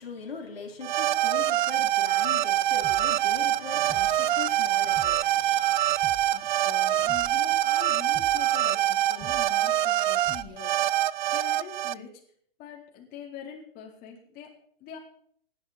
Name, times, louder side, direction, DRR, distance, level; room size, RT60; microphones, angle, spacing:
voice 1, 0.0-5.8, left 5 dB, 85° left, 0 dB, 3.6 m, -41 dB
sound 1, 0.8-11.9, right 13 dB, 55° right, 0.6 m, -25 dB
sound 2, 2.6-10.9, right 6 dB, 15° right, 1.2 m, -49 dB
voice 2, 6.3-11.0 11.3-12.1 12.6-15.0, left 8 dB, 30° left, 0 dB, 3.9 m, -44 dB
18.0 x 11.5 x 4.2 m, 0.64 s
hypercardioid pair, 125°, 29 cm